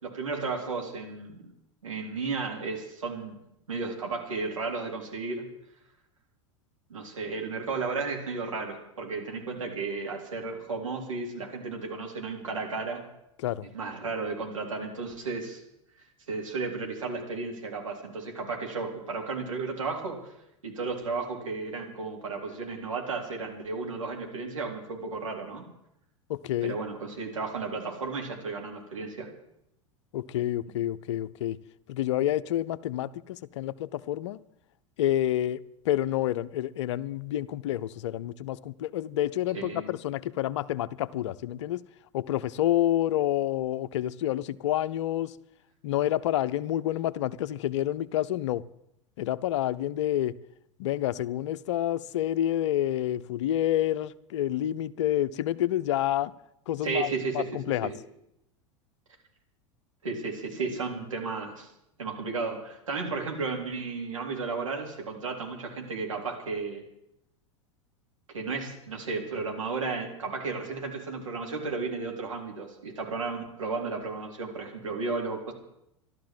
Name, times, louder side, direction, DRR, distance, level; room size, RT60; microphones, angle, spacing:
voice 1, 0.0-1.4 1.8-3.4 3.7-5.5 6.9-13.0 13.7-15.6 16.3-20.3 20.6-25.7 26.6-29.3 39.5-39.9 56.8-57.5 57.8-58.0 60.0-61.7 62.0-66.8 68.3-75.5, right 4 dB, 85° right, 3.6 m, -33 dB
voice 2, 26.3-26.8 30.1-31.6 31.9-34.4 35.0-41.8 42.1-45.3 45.8-48.6 49.2-50.3 50.8-56.3 56.7-57.1 57.3-57.9, left 12 dB, 65° left, 0.7 m, -28 dB
13.5 x 12.5 x 7.7 m
figure-of-eight pair, 85°, 16 cm